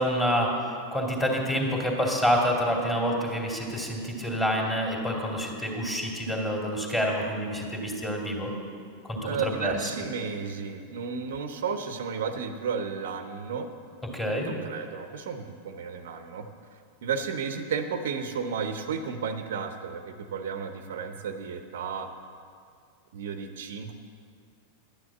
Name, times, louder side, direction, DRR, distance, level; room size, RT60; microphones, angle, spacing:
voice 1, 0.0-8.5 9.1-9.7 14.1-14.5, equal, 10° left, 0 dB, 2.7 m, -27 dB
voice 2, 9.2-13.7 14.5-22.1 23.1-23.9, right 6 dB, 60° right, 8 dB, 0.7 m, -33 dB
12.0 x 9.8 x 7.5 m, 2.2 s
figure-of-eight pair, 90°, 0 cm